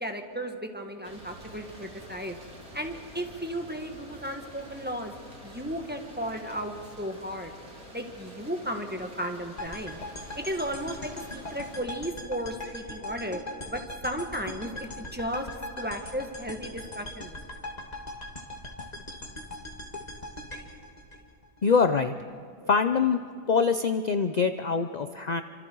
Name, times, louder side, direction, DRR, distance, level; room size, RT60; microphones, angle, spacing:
voice 1, 0.0-2.4 2.7-5.1 5.4-7.5 7.9-10.0 10.3-13.4 13.7-15.5 15.8-17.4, equal, 5° right, 4 dB, 1.6 m, -34 dB
sound 1, 1.0-11.8, right 1 dB, 70° right, 4.5 m, -48 dB
sound 2, 9.6-21.8, left 1 dB, 25° left, 2.7 m, -40 dB
voice 2, 21.6-22.1 22.7-23.2 23.5-25.4, left 5 dB, 50° left, 9 dB, 0.5 m, -24 dB
29.5 x 26.0 x 4.7 m, 2.5 s
omnidirectional pair, 1.6 m